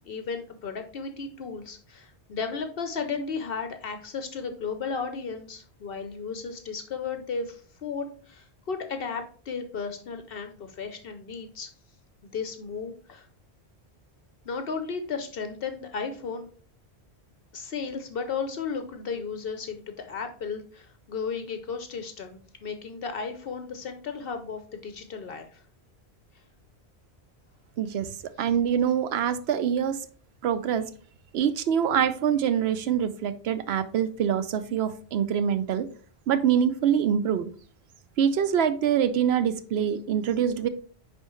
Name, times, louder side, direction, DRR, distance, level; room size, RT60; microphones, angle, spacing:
voice 1, 0.0-11.7 12.2-13.3 14.4-16.5 17.5-25.6, left 5 dB, 65° left, 7 dB, 0.9 m, -34 dB
voice 2, 27.8-28.1 28.4-30.0 30.4-30.9 31.3-35.9 36.3-37.5 38.2-40.7, right 8 dB, 75° right, 12 dB, 0.8 m, -25 dB
9.5 x 3.5 x 3.1 m, 0.43 s
omnidirectional pair, 1.1 m